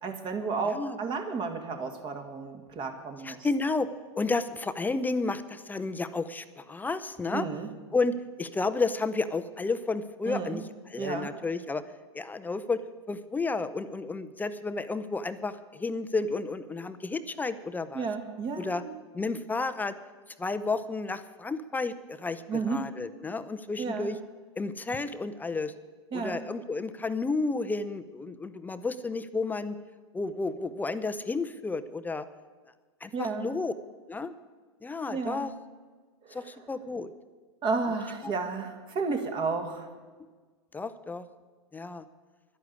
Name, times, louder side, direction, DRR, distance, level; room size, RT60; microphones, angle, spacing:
voice 1, 0.0-3.4 7.3-7.7 10.3-10.6 11.0-11.3 17.9-18.9 22.5-22.9 23.8-24.1 26.1-26.4 33.1-33.5 35.1-35.4 36.2-36.5 37.6-39.9, right 4 dB, 35° right, 5 dB, 2.1 m, -32 dB
voice 2, 0.7-1.0 3.2-3.9 4.2-7.5 7.9-11.8 12.1-12.8 13.1-18.1 18.6-18.8 19.1-19.9 20.4-22.4 22.7-24.2 24.6-25.7 26.1-29.8 30.1-32.3 33.0-33.7 34.1-34.3 34.8-35.5 36.3-37.1 38.2-38.3 40.7-41.2 41.7-42.0, left 3 dB, 10° left, 11 dB, 0.6 m, -31 dB
11.0 x 11.0 x 8.3 m, 1.4 s
hypercardioid pair, 100°, 15 cm